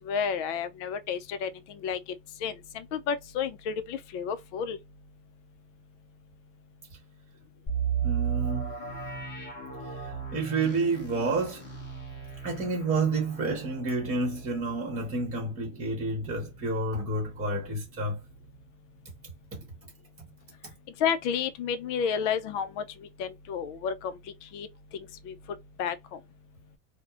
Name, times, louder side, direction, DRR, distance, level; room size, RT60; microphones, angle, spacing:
voice 1, 0.1-1.5 1.8-2.0 2.4-4.8 21.0-22.8 23.2-23.9 24.5-24.7 25.3-25.4 25.8-26.0, left 7 dB, 50° left, 0.4 m, -30 dB
sound 1, 7.7-17.4 17.7-17.8 18.3-18.6, right 7 dB, 20° left, 1.0 m, -36 dB
voice 2, 8.0-8.7 10.3-11.6 12.4-18.2, right 3 dB, 15° right, 1.0 m, -29 dB
2.9 x 2.1 x 2.4 m
supercardioid pair, 130°, 48 cm